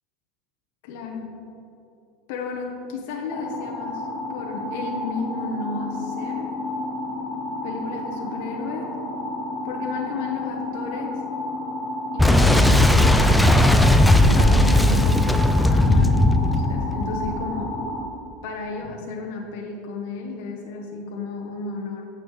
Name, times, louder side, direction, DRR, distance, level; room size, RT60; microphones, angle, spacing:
voice 1, 0.8-1.3 2.3-6.5 7.6-8.9 9.6-11.2 12.1-13.7 14.2-17.8 18.4-22.1, left 4 dB, 70° left, 0 dB, 1.0 m, -33 dB
sound 1, 3.3-18.0, left 2 dB, 50° left, 1.9 m, -31 dB
Boom, 12.2-17.8, left 1 dB, 5° left, 0.4 m, -17 dB
8.8 x 7.3 x 3.2 m, 2.7 s
supercardioid pair, 115°, 0 cm